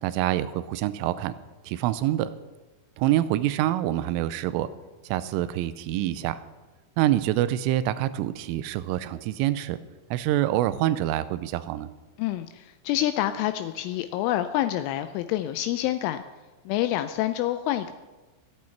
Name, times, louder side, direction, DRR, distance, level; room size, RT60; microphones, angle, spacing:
voice 1, 0.0-1.3 1.6-2.3 3.0-4.7 5.0-6.4 7.0-9.8 10.1-11.9, right 13 dB, 85° right, 14 dB, 3.1 m, -26 dB
voice 2, 12.2-16.2 16.7-17.9, left 13 dB, 85° left, 10 dB, 2.9 m, -27 dB
25.0 x 8.7 x 4.5 m, 1.2 s
omnidirectional pair, 5.7 m